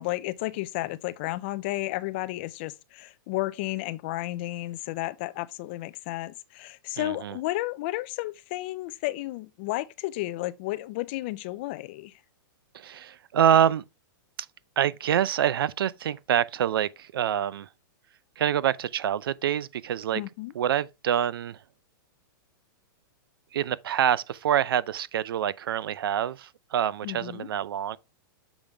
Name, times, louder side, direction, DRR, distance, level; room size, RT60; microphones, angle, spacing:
voice 1, 0.0-12.1 20.1-20.5 27.0-27.5, left 18 dB, 30° left, 0.4 m, -32 dB
voice 2, 7.0-7.4 12.7-13.8 14.8-17.7 18.4-20.2 20.5-21.6 23.5-28.0, right 10 dB, 80° right, 0.5 m, -26 dB
7.2 x 5.2 x 3.4 m
supercardioid pair, 170°, 12 cm